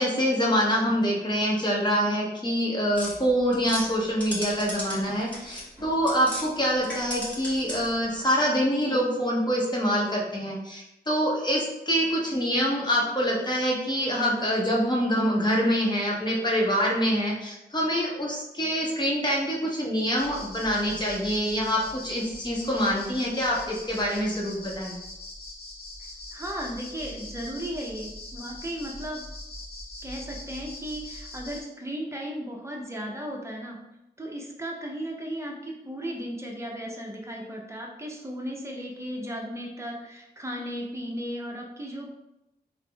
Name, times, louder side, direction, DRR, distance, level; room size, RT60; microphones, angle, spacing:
voice 1, 0.0-25.0, equal, 25° left, -3 dB, 0.8 m, -25 dB
sound 1, 2.9-6.5 6.8-8.0, equal, 10° left, 1.3 m, -36 dB
sound 2, 20.2-31.6, left 1 dB, 65° left, 0.9 m, -42 dB
voice 2, 26.3-29.2 30.0-33.8 34.2-42.2, equal, 15° right, -1 dB, 0.6 m, -35 dB
3.4 x 2.0 x 3.3 m, 0.90 s
wide cardioid pair, 100°, 17 cm